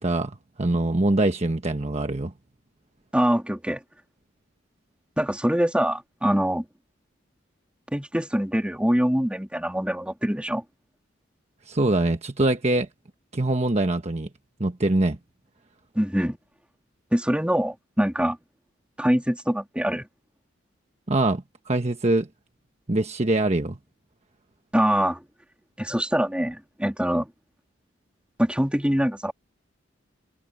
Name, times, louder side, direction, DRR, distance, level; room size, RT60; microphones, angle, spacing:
voice 1, 0.0-2.3 11.7-12.9 13.3-14.3 14.6-15.2 21.1-22.3 22.9-23.8, right 2 dB, 35° right, 1.2 m, -23 dB
voice 2, 3.1-3.8 5.2-6.6 7.9-10.6 15.9-16.4 17.1-18.4 19.0-20.1 24.7-25.2 25.8-27.3 28.4-29.3, equal, 5° right, 3.1 m, -24 dB
head